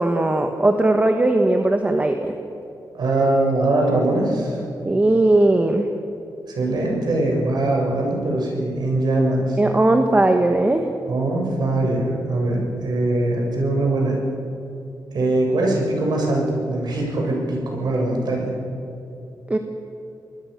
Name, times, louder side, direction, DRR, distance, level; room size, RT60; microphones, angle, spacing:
voice 1, 0.0-2.3 4.8-5.9 9.6-10.9 19.5-19.6, right 2 dB, 20° right, 5 dB, 1.4 m, -18 dB
voice 2, 2.9-4.6 6.5-9.6 11.1-14.2 15.1-18.5, right 2 dB, 75° right, 0 dB, 7.2 m, -22 dB
26.0 x 20.0 x 6.7 m, 2.9 s
wide cardioid pair, 120°, 7 cm